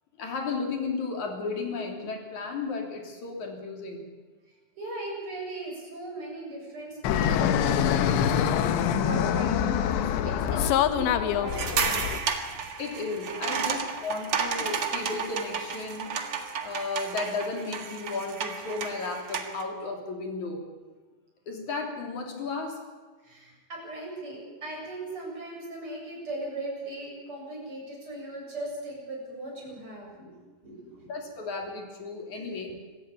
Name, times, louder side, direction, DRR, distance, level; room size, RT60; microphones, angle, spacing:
voice 1, 0.2-4.0 12.8-16.1 16.6-20.6 21.5-22.8 31.1-32.7, left 4 dB, 45° left, 2 dB, 4.2 m, -34 dB
voice 2, 4.8-12.0 13.6-13.7 23.2-30.3 30.6-31.1 32.3-32.6, right 1 dB, 30° right, -2 dB, 8.2 m, -39 dB
Fixed-wing aircraft airplane, 7.0-12.2, left 9 dB, 80° left, 3.3 m, -25 dB
sound 1, 11.5-19.6, right 6 dB, 55° right, 1.6 m, -32 dB
26.0 x 15.5 x 8.8 m, 1.4 s
omnidirectional pair, 5.3 m